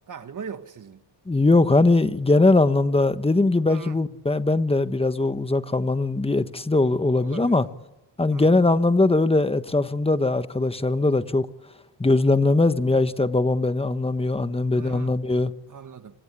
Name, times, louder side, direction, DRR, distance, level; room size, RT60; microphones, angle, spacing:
voice 1, 0.1-1.0 3.7-4.0 7.2-7.6 8.3-8.5 14.7-15.2 15.7-16.2, right 7 dB, 45° right, 1.9 m, -39 dB
voice 2, 1.3-7.6 8.2-11.5 12.0-15.5, left 2 dB, 15° left, 1.3 m, -21 dB
27.0 x 26.0 x 8.5 m
cardioid pair, 105°, 42 cm